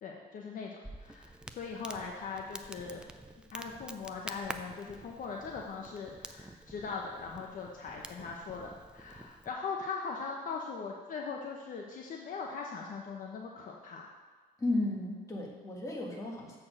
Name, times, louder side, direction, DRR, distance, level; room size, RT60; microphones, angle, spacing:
voice 1, 0.0-3.0 3.5-14.1, left 5 dB, 55° left, 0 dB, 0.9 m, -40 dB
Crackle, 0.8-9.5, right 1 dB, 5° right, 0.4 m, -48 dB
voice 2, 14.6-16.6, left 2 dB, 20° left, -2 dB, 1.9 m, -34 dB
7.5 x 4.4 x 6.4 m, 1.4 s
cardioid pair, 110°, 17 cm